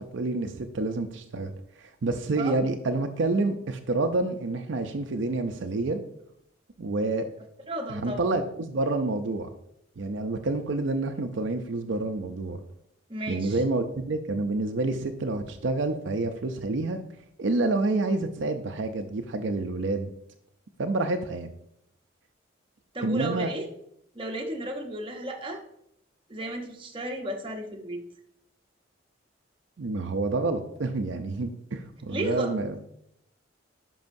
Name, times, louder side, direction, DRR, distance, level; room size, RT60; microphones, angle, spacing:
voice 1, 0.0-6.0 6.8-7.3 7.9-9.5 10.0-12.6 13.3-17.0 17.4-20.1 20.8-21.5 23.0-23.5 29.8-32.7, right 2 dB, 70° right, 6 dB, 0.5 m, -28 dB
voice 2, 7.7-8.3 13.1-13.6 22.9-23.7 24.1-25.6 26.3-28.0 32.1-32.6, right 1 dB, 25° right, 1 dB, 0.9 m, -33 dB
10.5 x 5.5 x 2.6 m, 0.76 s
head